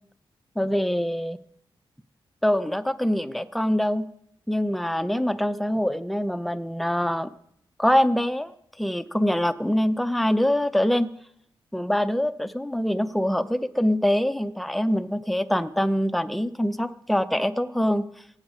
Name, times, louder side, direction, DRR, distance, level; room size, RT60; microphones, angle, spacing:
voice 1, 0.6-1.4 2.4-4.1 4.5-7.3 7.8-8.5 8.8-11.1 11.7-18.1, equal, ahead, 11 dB, 0.6 m, -24 dB
16.0 x 7.2 x 8.4 m, 0.70 s
wide cardioid pair, 165°, 9 cm